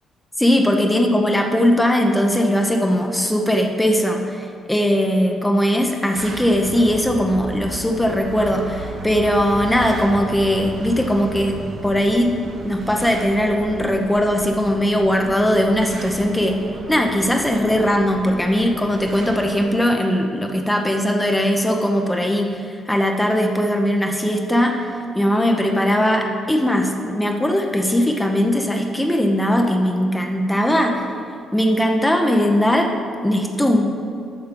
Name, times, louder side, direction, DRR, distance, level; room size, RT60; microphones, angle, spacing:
voice 1, 0.4-12.4 12.6-16.6 16.9-22.5 22.9-24.8 25.1-31.0 31.5-32.9 33.2-34.0, equal, 10° left, 3 dB, 0.8 m, -19 dB
sound 1, 6.1-19.6, right 3 dB, 55° right, 1.2 m, -34 dB
8.9 x 5.5 x 5.3 m, 2.5 s
cardioid pair, 90°, 0 cm